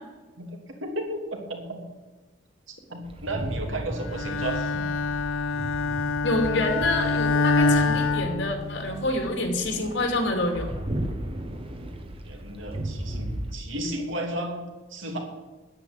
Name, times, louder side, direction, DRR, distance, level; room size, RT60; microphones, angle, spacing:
voice 1, 0.8-1.8 2.7-4.9 12.2-14.6 14.9-15.2, right 1 dB, 75° right, 1 dB, 2.9 m, -33 dB
sound 1, 3.0-13.6, right 1 dB, 25° right, 1.3 m, -36 dB
Bowed string instrument, 4.1-9.1, left 3 dB, 85° left, 0.6 m, -25 dB
voice 2, 6.2-10.7, left 1 dB, 65° left, 4 dB, 2.6 m, -27 dB
9.9 x 8.9 x 9.7 m, 1.3 s
head